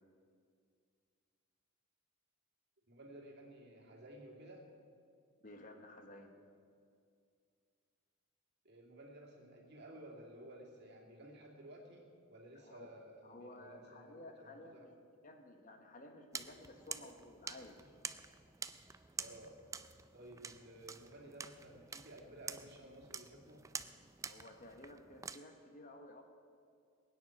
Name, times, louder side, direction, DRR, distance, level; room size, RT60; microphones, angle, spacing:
voice 1, 2.9-4.7 8.6-14.9 19.2-19.6 20.1-23.7, right 1 dB, 55° right, -1 dB, 2.7 m, -55 dB
voice 2, 5.4-6.3 12.5-12.9 13.2-15.0 15.2-17.9 24.3-26.2, left 1 dB, 40° left, 4 dB, 1.3 m, -54 dB
sound 1, 16.3-25.4, right 5 dB, 15° right, 0.4 m, -48 dB
21.0 x 9.6 x 6.1 m, 2.3 s
head